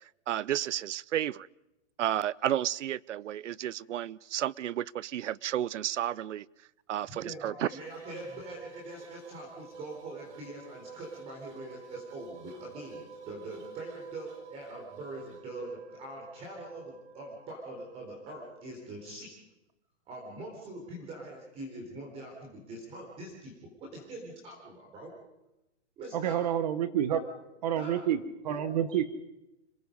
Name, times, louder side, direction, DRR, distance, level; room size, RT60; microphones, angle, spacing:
voice 1, 0.3-1.5 2.0-6.5 6.9-7.7, right 11 dB, 90° right, 24 dB, 0.7 m, -32 dB
voice 2, 7.1-19.3 20.1-25.1 26.0-26.4 27.1-27.2 27.8-28.0 28.5-28.8, right 2 dB, 15° right, 0 dB, 4.0 m, -43 dB
sound 1, 7.8-19.2, right 4 dB, 70° right, 4.3 m, -50 dB
voice 3, 26.1-27.2 27.6-29.0, right 10 dB, 35° right, 13 dB, 1.1 m, -29 dB
26.5 x 21.0 x 5.3 m, 0.96 s
hypercardioid pair, 170°, 35 cm